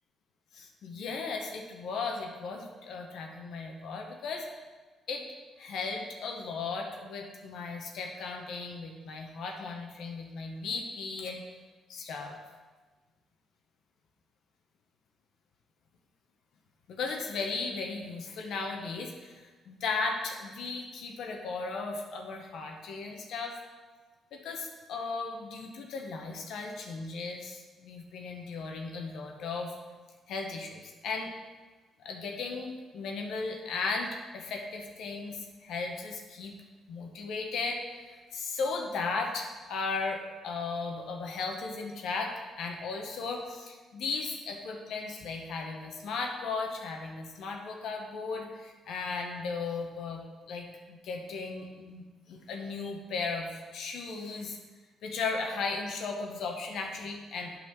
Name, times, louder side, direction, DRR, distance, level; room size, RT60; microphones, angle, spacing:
voice 1, 0.5-4.4 5.1-5.2 5.6-11.4 11.9-12.4 16.9-23.6 24.3-29.7 30.3-31.3 32.0-36.5 36.9-50.2 50.5-54.6 55.0-57.5, left 4 dB, 75° left, 2 dB, 1.0 m, -36 dB
8.3 x 4.2 x 5.9 m, 1.3 s
cardioid pair, 90°, 0 cm